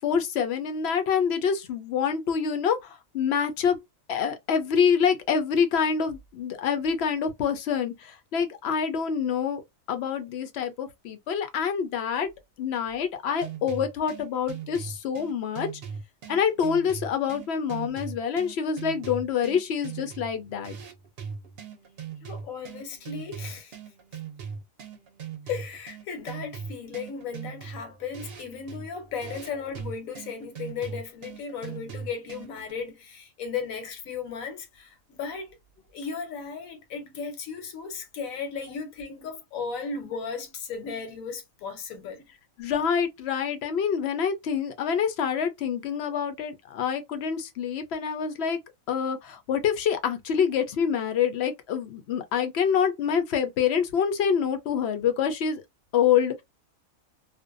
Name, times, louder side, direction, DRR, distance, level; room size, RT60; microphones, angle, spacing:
voice 1, 0.0-3.8 4.1-9.6 9.9-12.3 12.6-15.7 16.3-20.8 42.6-48.6 48.9-55.6 55.9-56.4, left 7 dB, 60° left, 0.7 m, -26 dB
sound 1, 13.4-32.7, right 7 dB, 55° right, 0.8 m, -40 dB
voice 2, 22.2-23.7 25.5-35.6 35.9-42.2, left 5 dB, 85° left, 1.2 m, -36 dB
2.5 x 2.2 x 2.4 m
omnidirectional pair, 1.4 m